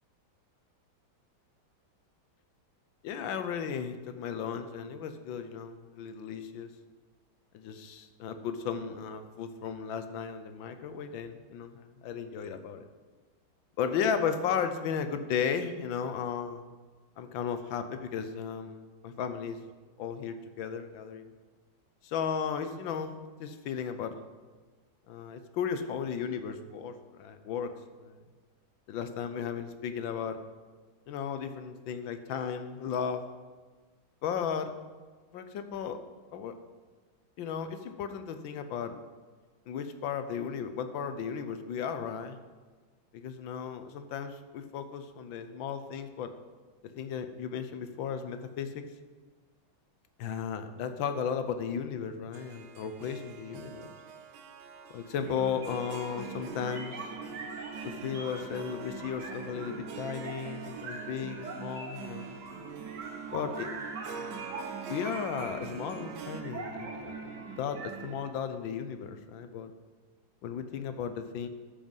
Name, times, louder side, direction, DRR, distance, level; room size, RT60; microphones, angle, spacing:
voice 1, 3.0-6.7 7.5-12.9 13.8-16.6 17.2-19.6 20.0-21.3 22.0-23.1 23.4-24.1 25.1-27.7 28.0-28.2 28.9-30.4 31.1-33.2 34.2-34.7 35.3-36.0 36.3-36.6 37.4-39.0 39.7-42.4 43.1-46.3 47.0-48.8 50.2-53.9 54.9-57.0 57.8-62.3 63.3-63.7 64.9-67.2 67.5-69.7 70.4-71.5, left 7 dB, 75° left, 9 dB, 1.5 m, -35 dB
Harp, 52.3-66.4, right 6 dB, 85° right, 1.6 m, -48 dB
sound 1, 55.2-68.3, right 4 dB, 60° right, 1.7 m, -41 dB
13.5 x 5.5 x 5.5 m, 1.4 s
omnidirectional pair, 2.2 m